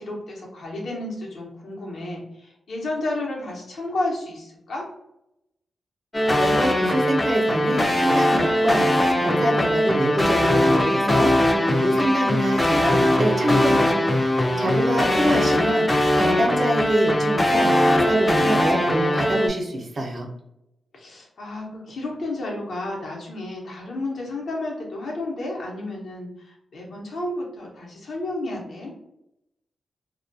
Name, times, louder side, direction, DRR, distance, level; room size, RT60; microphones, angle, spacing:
voice 1, 0.0-4.9 14.4-15.5 20.9-28.9, left 2 dB, 75° left, -2 dB, 0.8 m, -32 dB
sound 1, 6.1-19.5, left 1 dB, 20° left, 0.4 m, -20 dB
voice 2, 6.4-11.3 11.7-14.0 14.3-20.3, right 1 dB, 55° right, 2 dB, 0.6 m, -25 dB
2.2 x 2.2 x 2.6 m, 0.83 s
cardioid pair, 70°, 0 cm